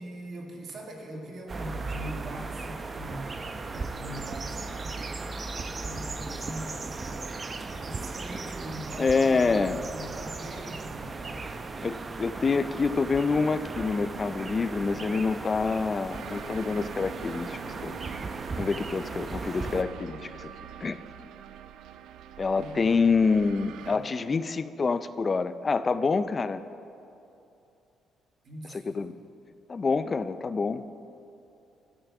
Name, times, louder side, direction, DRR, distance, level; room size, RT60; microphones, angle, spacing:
voice 1, 0.0-5.0 5.8-7.4 7.7-11.9 22.6-23.1 23.8-24.1 28.4-29.2, right 1 dB, 60° right, 0 dB, 1.9 m, -42 dB
sound 1, 1.5-19.8, right 3 dB, 35° right, 0.6 m, -37 dB
voice 2, 9.0-9.8 11.8-18.0 18.6-20.5 20.8-21.0 22.4-26.6 28.7-29.2 29.7-30.8, left 4 dB, 35° left, 13 dB, 0.4 m, -27 dB
sound 2, 16.1-24.0, right 10 dB, 85° right, 0.3 m, -44 dB
12.0 x 5.7 x 7.0 m, 2.8 s
cardioid pair, 90°, 0 cm